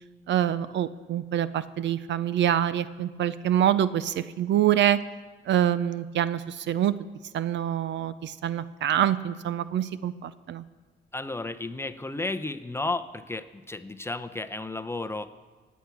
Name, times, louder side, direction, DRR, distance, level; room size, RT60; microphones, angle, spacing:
voice 1, 0.3-5.0 5.5-6.9 7.3-10.6, right 10 dB, 65° right, 15 dB, 0.6 m, -25 dB
voice 2, 11.1-15.4, left 2 dB, 10° left, 10 dB, 0.7 m, -33 dB
19.5 x 8.3 x 6.0 m, 1.3 s
cardioid pair, 90°, 20 cm